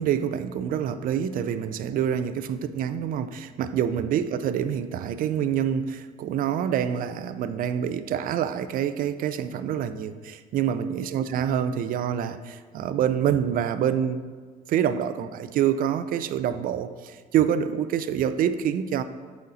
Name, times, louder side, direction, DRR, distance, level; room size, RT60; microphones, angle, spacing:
voice 1, 0.0-14.2 14.7-19.0, right 9 dB, 55° right, 12 dB, 0.4 m, -26 dB
7.8 x 4.3 x 3.9 m, 1.5 s
cardioid pair, 110°, 17 cm